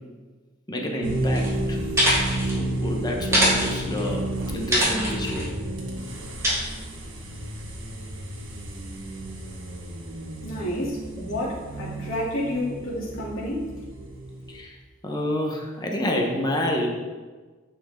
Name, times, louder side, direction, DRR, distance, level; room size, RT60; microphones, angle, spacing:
voice 1, 0.7-1.8 2.4-5.5 14.5-14.8 15.0-16.9, left 1 dB, 20° left, 1 dB, 1.2 m, -28 dB
sound 1, 1.0-14.6, right 1 dB, 70° right, 1.5 m, -31 dB
sound 2, 1.3-1.5 1.8-2.6 3.2-4.1 4.7-5.5 6.4-6.5, equal, 15° right, 2.8 m, -23 dB
voice 2, 10.4-13.7, left 1 dB, 80° left, -6 dB, 3.0 m, -30 dB
11.5 x 6.1 x 3.8 m, 1.3 s
head